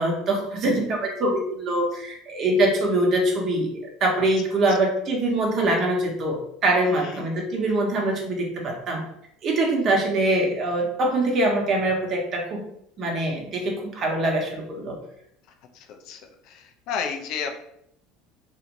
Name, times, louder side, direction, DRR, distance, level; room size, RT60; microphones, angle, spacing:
voice 1, 0.0-9.0 9.4-12.6 13.0-15.0, right 1 dB, 45° right, 1 dB, 0.9 m, -23 dB
voice 2, 6.8-7.3 15.7-17.6, left 6 dB, 65° left, 4 dB, 0.5 m, -33 dB
2.8 x 2.7 x 2.5 m, 0.74 s
supercardioid pair, 95°, 0 cm